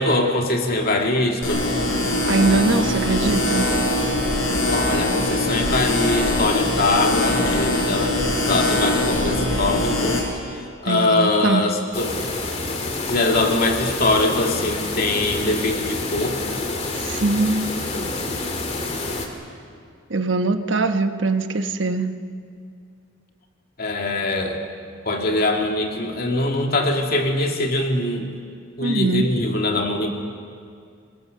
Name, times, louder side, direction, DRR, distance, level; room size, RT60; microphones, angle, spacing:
voice 1, 0.0-1.7 4.7-10.2 10.5-12.2 13.1-16.4 23.8-24.6 25.1-28.3 28.8-30.1, left 2 dB, 50° left, 2 dB, 2.3 m, -22 dB
sound 1, 1.4-10.2, left 1 dB, 80° left, 5.7 m, -22 dB
voice 2, 2.3-3.7 10.9-11.6 16.9-18.2 20.1-22.2 28.8-29.3, right 3 dB, 65° right, 8 dB, 1.1 m, -22 dB
sound 2, 11.9-19.3, left 2 dB, 35° left, 2.3 m, -28 dB
24.0 x 21.0 x 6.7 m, 2.3 s
head